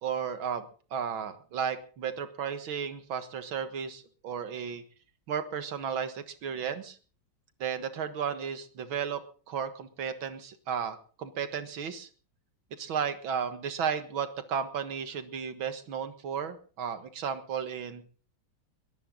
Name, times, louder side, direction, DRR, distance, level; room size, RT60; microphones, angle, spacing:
voice 1, 0.0-4.8 5.3-7.0 7.6-12.1 12.7-18.0, right 7 dB, 75° right, 9 dB, 2.3 m, -34 dB
22.0 x 13.5 x 3.9 m, 0.40 s
omnidirectional pair, 2.2 m